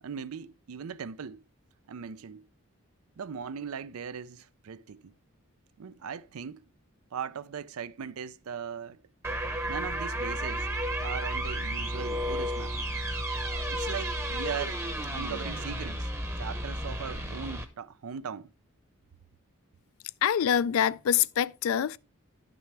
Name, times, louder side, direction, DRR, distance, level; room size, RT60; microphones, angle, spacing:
voice 1, 0.0-1.4 1.9-2.5 3.2-5.1 5.8-6.7 7.1-9.0 9.7-10.7 11.0-12.8 13.7-14.8 15.1-16.1 16.4-18.5, right 7 dB, 85° right, 0.5 m, -39 dB
sound 1, 9.2-17.7, right 1 dB, 10° right, 0.8 m, -32 dB
voice 2, 20.2-22.0, left 9 dB, 75° left, 0.3 m, -25 dB
11.0 x 6.1 x 3.2 m
head